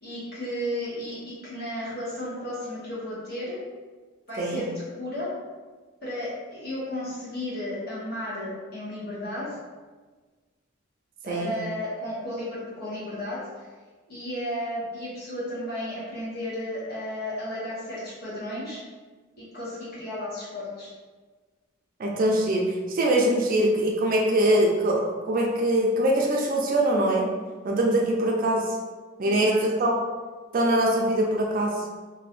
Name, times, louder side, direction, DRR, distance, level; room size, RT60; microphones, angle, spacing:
voice 1, 0.0-3.6 4.3-4.7 5.0-5.3 6.0-9.6 11.2-13.4 14.1-18.8 19.4-20.9 29.2-29.6, left 1 dB, 50° left, -9 dB, 1.3 m, -33 dB
voice 2, 22.0-27.3 27.6-28.8 29.2-29.9 30.5-31.8, right 1 dB, 40° right, -1 dB, 0.4 m, -23 dB
2.9 x 2.6 x 3.0 m, 1.3 s
head